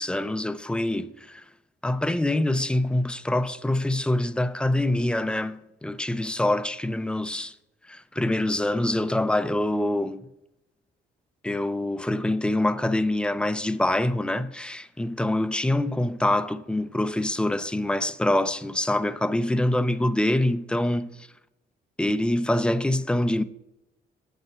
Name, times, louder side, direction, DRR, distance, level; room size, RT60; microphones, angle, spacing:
voice 1, 0.0-1.4 1.8-7.6 7.9-10.3 11.4-21.3 22.0-23.4, left 1 dB, 5° left, 0.4 m, -25 dB
8.1 x 5.5 x 5.8 m
cardioid pair, 90°, 20 cm